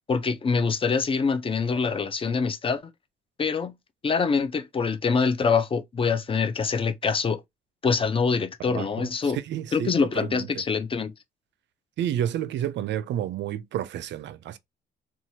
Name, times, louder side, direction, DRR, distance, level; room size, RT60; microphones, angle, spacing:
voice 1, 0.1-2.8 3.4-3.7 4.0-7.4 7.8-9.4 9.7-11.1, left 5 dB, 25° left, 0.5 m, -25 dB
voice 2, 8.7-10.6 12.0-14.6, right 10 dB, 65° right, 0.4 m, -31 dB
2.9 x 2.3 x 2.7 m
cardioid pair, 90°, 20 cm